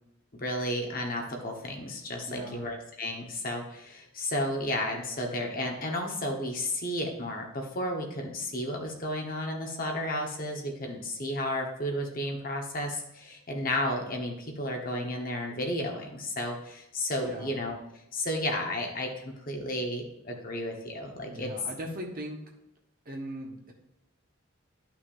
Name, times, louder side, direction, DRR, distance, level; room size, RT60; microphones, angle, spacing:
voice 1, 0.4-17.8 18.1-21.5, left 1 dB, 40° left, 1 dB, 1.2 m, -33 dB
voice 2, 2.2-2.7 17.2-17.6 21.3-22.4 23.0-23.7, right 1 dB, 40° right, 1 dB, 1.3 m, -39 dB
12.0 x 5.9 x 2.6 m, 0.84 s
head